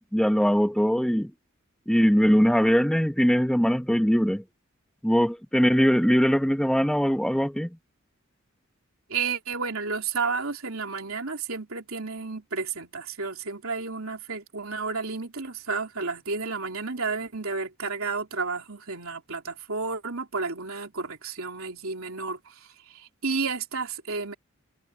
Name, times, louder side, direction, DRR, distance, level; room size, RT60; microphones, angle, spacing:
voice 1, 0.1-1.3 1.9-4.4 5.0-7.7, equal, 5° left, 1.0 m, -21 dB
voice 2, 9.1-24.3, right 4 dB, 75° right, 3.4 m, -32 dB
head